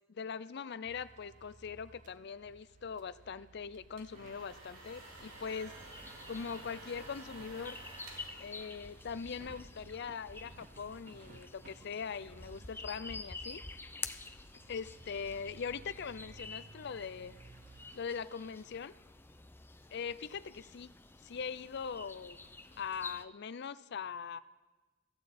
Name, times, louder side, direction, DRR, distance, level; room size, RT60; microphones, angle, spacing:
voice 1, 0.1-5.7 6.3-7.8 8.4-13.6 14.7-17.3 17.9-18.9 19.9-20.9 21.2-22.4 22.8-24.4, left 6 dB, 60° left, 15 dB, 0.5 m, -41 dB
sound 1, 0.8-18.0, right 3 dB, 40° right, 0.5 m, -58 dB
sound 2, 3.7-9.5, right 2 dB, 85° right, 3.0 m, -53 dB
sound 3, 5.0-23.2, left 3 dB, 10° left, 0.5 m, -49 dB
16.5 x 14.0 x 4.3 m, 1.2 s
head